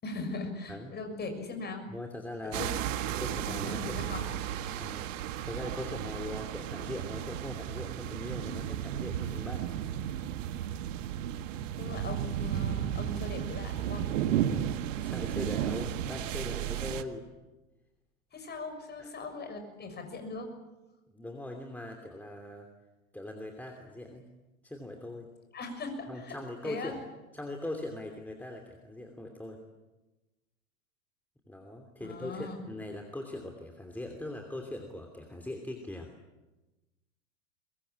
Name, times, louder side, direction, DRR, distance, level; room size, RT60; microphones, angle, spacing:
voice 1, 0.0-1.8 2.4-2.7 3.3-4.3 11.8-14.1 18.3-20.5 25.5-26.3 26.6-26.9 32.0-32.6, left 3 dB, 25° left, 6 dB, 6.6 m, -40 dB
voice 2, 1.9-2.7 3.2-4.2 4.8-5.1 5.4-9.8 11.8-12.0 14.5-14.7 15.0-17.3 19.0-19.1 21.1-22.7 23.1-24.3 24.6-25.3 26.1-27.0 27.3-29.6 31.5-36.1, left 1 dB, 5° left, 3 dB, 2.9 m, -41 dB
sound 1, 2.5-17.0, right 10 dB, 60° right, 1.7 m, -34 dB
23.0 x 22.0 x 8.8 m, 1.1 s
hypercardioid pair, 100°, 42 cm